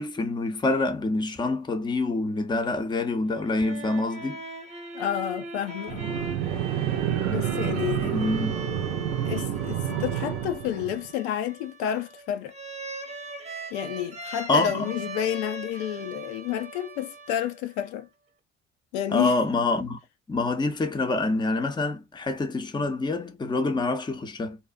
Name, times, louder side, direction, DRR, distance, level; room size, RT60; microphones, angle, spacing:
voice 1, 0.0-4.4 8.0-8.5 14.5-14.9 19.1-20.0 20.3-24.6, left 2 dB, 15° left, 0.5 m, -26 dB
sound 1, 3.3-17.9, right 2 dB, 20° right, 0.9 m, -40 dB
voice 2, 4.9-6.1 7.3-8.3 9.2-12.6 13.7-18.1 18.9-19.3, left 10 dB, 75° left, 0.5 m, -30 dB
sound 2, 5.9-11.1, right 11 dB, 85° right, 0.6 m, -29 dB
2.5 x 2.0 x 2.4 m
hypercardioid pair, 60°, 35 cm